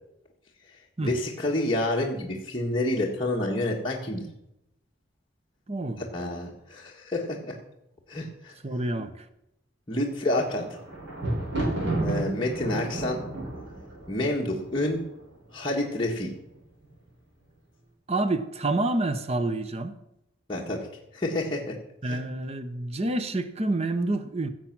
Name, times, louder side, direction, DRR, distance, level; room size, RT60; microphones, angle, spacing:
voice 1, 1.0-4.3 6.0-7.6 8.1-8.5 9.9-10.7 12.0-13.2 14.1-15.0 15.5-16.3 20.5-20.9 21.1-21.8 22.0-22.2, left 1 dB, 25° left, -3 dB, 1.6 m, -28 dB
voice 2, 5.7-6.0 8.6-9.3 18.1-20.0 22.0-24.5, right 2 dB, 35° right, 11 dB, 0.8 m, -28 dB
Thunder, 10.2-15.3 16.0-16.6 16.8-16.9, right 2 dB, 70° right, 5.8 m, -31 dB
16.0 x 7.6 x 6.0 m, 0.84 s
head